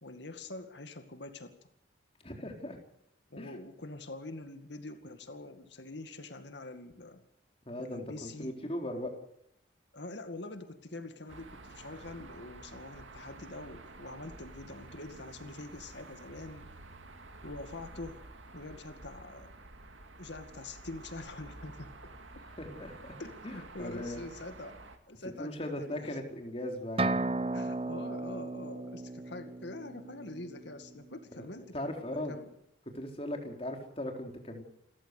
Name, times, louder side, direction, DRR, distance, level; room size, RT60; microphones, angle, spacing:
voice 1, 0.0-1.5 3.3-7.2 7.8-8.5 9.9-16.7 17.4-18.2 18.5-19.5 20.2-22.4 23.2-26.2 27.5-32.5, left 2 dB, 70° left, 8 dB, 2.2 m, -45 dB
voice 2, 2.2-2.8 3.4-3.5 7.7-9.1 22.6-23.2 23.4-23.5 23.8-24.3 25.4-27.2 31.3-31.5 31.7-32.3 32.9-34.6, left 1 dB, 30° left, 3 dB, 3.9 m, -38 dB
sound 1, 11.3-25.0, right 2 dB, 90° right, 2.7 m, -50 dB
sound 2, 27.0-30.7, right 2 dB, 30° right, 0.8 m, -34 dB
29.0 x 14.5 x 6.7 m, 0.77 s
head